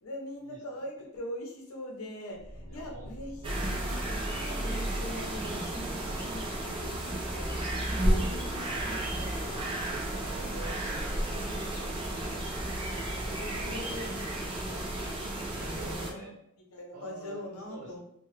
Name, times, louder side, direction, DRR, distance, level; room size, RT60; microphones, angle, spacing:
voice 1, 0.0-9.7 12.2-12.4 13.2-16.2 16.7-18.0, left 1 dB, 75° left, 0 dB, 0.7 m, -43 dB
sound 1, 2.3-16.0, equal, 25° left, 0.6 m, -45 dB
voice 2, 2.7-3.1 3.4-3.8 9.8-12.5 13.2-14.1 15.6-16.3 16.9-17.4 17.7-18.0, right 2 dB, 65° right, -4 dB, 0.9 m, -47 dB
sound 2, 3.4-16.1, right 1 dB, 25° right, 0.4 m, -33 dB
2.7 x 2.2 x 3.1 m, 0.73 s
head